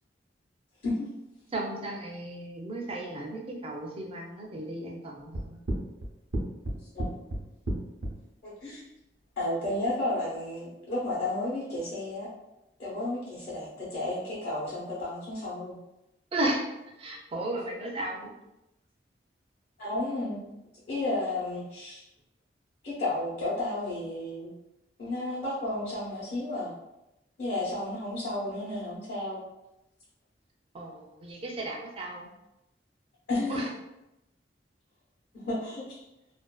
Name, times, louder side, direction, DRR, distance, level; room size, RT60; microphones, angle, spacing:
voice 1, 1.5-5.6 16.3-16.6 17.0-18.3 30.7-32.3 33.5-33.7, right 1 dB, 35° right, 0 dB, 0.4 m, -34 dB
sound 1, 5.3-8.1, right 1 dB, 80° right, 0.6 m, -31 dB
voice 2, 8.4-8.8 9.4-12.3 12.8-15.8 19.8-20.5 20.9-22.0 22.8-24.5 25.0-26.7 27.4-29.4 33.3-33.6 35.4-36.0, left 2 dB, 60° left, -9 dB, 0.8 m, -32 dB
2.5 x 2.2 x 2.2 m, 0.90 s
head